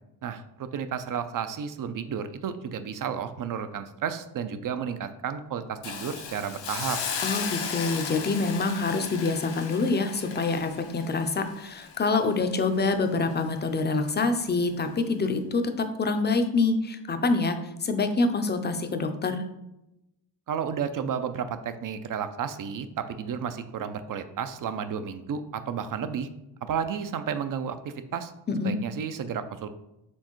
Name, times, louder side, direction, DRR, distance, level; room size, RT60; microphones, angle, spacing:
voice 1, 0.2-7.0 20.5-26.3 26.6-28.3 28.6-29.7, right 7 dB, 50° right, 10 dB, 0.5 m, -32 dB
Hiss, 5.8-12.9 13.3-13.4, left 6 dB, 70° left, 0.8 m, -36 dB
voice 2, 7.2-15.6 16.0-19.4 28.5-28.8, left 3 dB, 25° left, 7 dB, 0.5 m, -26 dB
4.4 x 3.2 x 3.0 m, 0.90 s
cardioid pair, 70°, 44 cm